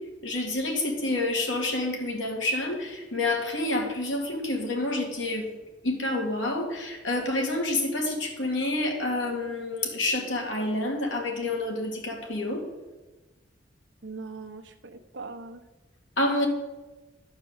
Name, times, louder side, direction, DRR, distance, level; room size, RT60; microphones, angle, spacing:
voice 1, 0.2-5.6 5.8-12.6 16.2-16.5, left 2 dB, 90° left, 1 dB, 2.2 m, -28 dB
voice 2, 14.0-15.6, right 3 dB, 70° right, 5 dB, 1.0 m, -40 dB
11.5 x 4.7 x 8.0 m, 1.2 s
head